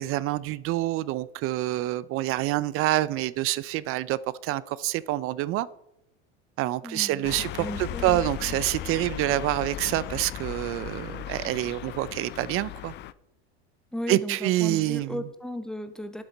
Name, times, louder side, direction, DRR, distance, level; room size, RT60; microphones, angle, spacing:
voice 1, 0.0-5.7 6.6-12.9 14.1-15.2, right 15 dB, 40° right, 19 dB, 0.4 m, -27 dB
voice 2, 6.8-7.3 7.6-8.2 13.9-16.2, equal, ahead, 9 dB, 0.9 m, -35 dB
sound 1, 7.2-13.1, left 13 dB, 35° left, 0.4 m, -36 dB
10.5 x 7.9 x 4.1 m, 0.84 s
supercardioid pair, 115°, 34 cm